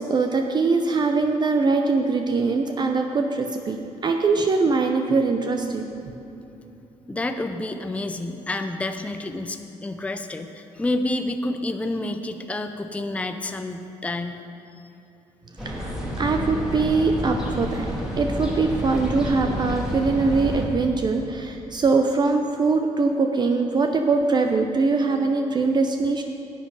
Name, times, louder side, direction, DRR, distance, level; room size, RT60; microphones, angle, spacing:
voice 1, 0.0-6.0 15.6-17.9 18.2-26.2, right 4 dB, 35° right, 4 dB, 0.6 m, -22 dB
voice 2, 7.1-14.4, left 2 dB, 10° left, 7 dB, 0.5 m, -29 dB
sound 1, 15.6-20.7, equal, 5° right, 2.1 m, -29 dB
11.0 x 8.5 x 4.8 m, 2.9 s
cardioid pair, 100°, 13 cm